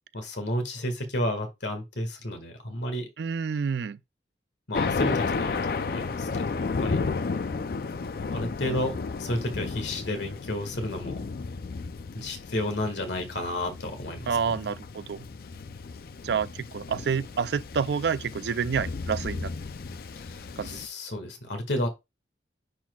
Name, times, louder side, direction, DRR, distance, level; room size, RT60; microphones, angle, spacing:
voice 1, 0.1-3.1 4.7-7.0 8.3-11.2 12.1-14.6 20.2-21.9, left 1 dB, 75° left, 1.8 m, -32 dB
voice 2, 3.2-4.0 14.3-15.2 16.2-19.5 20.6-20.8, right 6 dB, 65° right, 0.4 m, -28 dB
Thunder, 4.7-20.9, left 4 dB, 50° left, 0.4 m, -33 dB
10.0 x 4.2 x 2.3 m
head